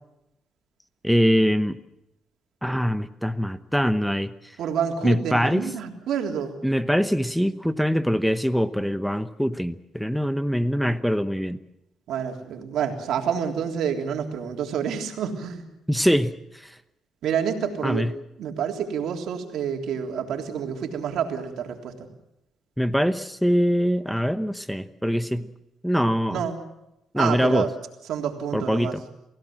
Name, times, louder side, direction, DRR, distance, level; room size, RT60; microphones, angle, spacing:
voice 1, 1.0-1.8 2.6-4.6 5.0-5.7 6.6-11.6 15.9-16.8 17.8-18.1 22.8-25.5 25.8-26.5 27.1-27.7 28.5-29.0, equal, ahead, 13 dB, 0.9 m, -23 dB
voice 2, 4.6-6.6 12.1-15.6 17.2-18.1 18.4-21.9 26.3-26.6 27.2-27.7 28.1-29.0, right 8 dB, 75° right, 3 dB, 3.5 m, -28 dB
28.0 x 16.5 x 7.7 m, 0.87 s
cardioid pair, 90°, 0 cm